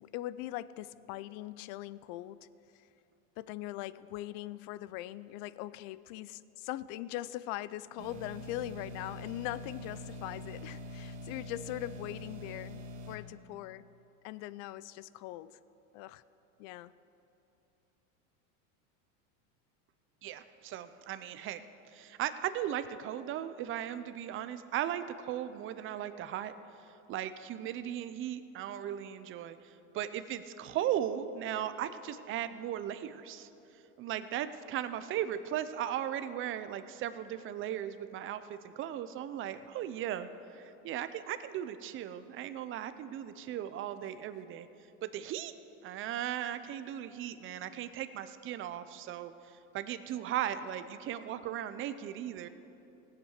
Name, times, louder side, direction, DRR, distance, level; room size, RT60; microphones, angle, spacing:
voice 1, 0.0-2.5 2.7-2.9 3.4-13.8 14.2-15.6 15.9-16.2 16.6-16.9, left 15 dB, 50° left, 18 dB, 0.4 m, -41 dB
sound 1, 8.0-13.2, left 1 dB, 70° right, 2.1 m, -44 dB
voice 2, 20.2-21.6 21.9-26.5 27.1-33.5 34.0-44.7 45.0-45.5 45.8-52.5, right 11 dB, 30° right, 11 dB, 0.6 m, -37 dB
17.5 x 8.1 x 6.6 m, 2.9 s
supercardioid pair, 135°, 39 cm